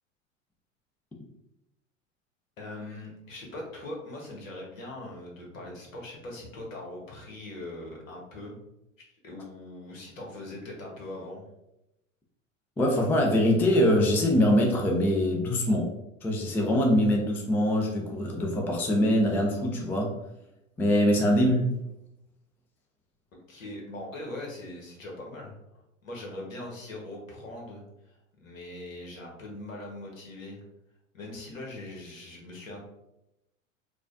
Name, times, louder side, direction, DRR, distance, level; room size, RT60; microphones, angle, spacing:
voice 1, 2.6-8.6 9.2-11.4 23.5-25.5 26.0-30.6 31.1-32.9, left 1 dB, 80° left, -1 dB, 1.3 m, -41 dB
voice 2, 12.8-15.9 16.2-20.2 20.8-21.7, equal, 5° left, 1 dB, 0.3 m, -23 dB
4.9 x 2.3 x 2.5 m, 0.87 s
hypercardioid pair, 90°, 39 cm